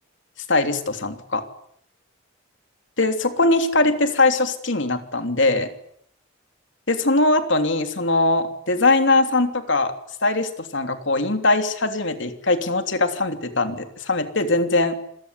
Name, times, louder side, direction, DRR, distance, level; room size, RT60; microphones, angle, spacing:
voice 1, 0.5-1.4 3.0-5.7 6.9-9.9 10.2-14.9, left 2 dB, 60° left, 7 dB, 3.3 m, -21 dB
28.0 x 21.0 x 9.8 m, 0.72 s
head